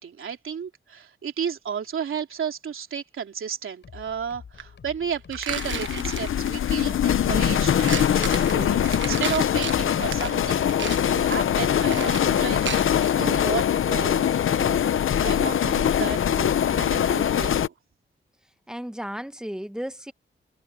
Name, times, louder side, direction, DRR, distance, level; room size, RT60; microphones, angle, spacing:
voice 1, 0.0-14.2 14.6-14.8 15.2-17.7, right 7 dB, 85° right, 3.1 m, -33 dB
sound 1, 3.8-11.3, left 6 dB, 60° left, 7.9 m, -47 dB
sound 2, 4.6-4.7 5.3-6.8 7.6-13.3, right 7 dB, 65° right, 1.2 m, -34 dB
sound 3, 5.5-17.7, left 9 dB, 90° left, 0.7 m, -23 dB
voice 2, 18.7-20.1, equal, 5° right, 1.0 m, -34 dB
wide cardioid pair, 175°, 21 cm